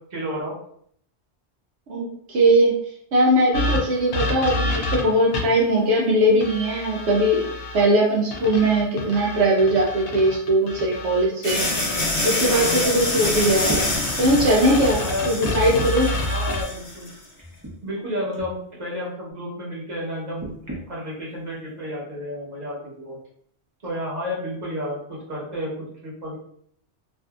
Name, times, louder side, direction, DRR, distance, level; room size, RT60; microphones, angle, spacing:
voice 1, 0.1-0.6 12.5-13.0 15.0-15.4 16.3-17.1 17.8-20.5 20.9-23.2 23.8-26.4, equal, 40° right, -5 dB, 1.1 m, -31 dB
voice 2, 1.9-2.8 3.1-7.4 7.7-12.0 12.2-13.8 14.2-16.1, right 1 dB, 80° right, -2 dB, 0.8 m, -20 dB
sound 1, 3.5-5.7 6.4-7.8 8.3-12.0 12.4-16.6, left 2 dB, 85° left, 0.9 m, -29 dB
sound 2, 11.4-17.1, left 1 dB, 45° left, 1.0 m, -26 dB
sound 3, 13.6-13.9 15.4-16.1 17.4-17.7 18.3-18.5 20.4-20.8 21.7-21.8, right 1 dB, 20° right, 0.6 m, -32 dB
2.6 x 2.5 x 2.3 m, 0.66 s
omnidirectional pair, 1.1 m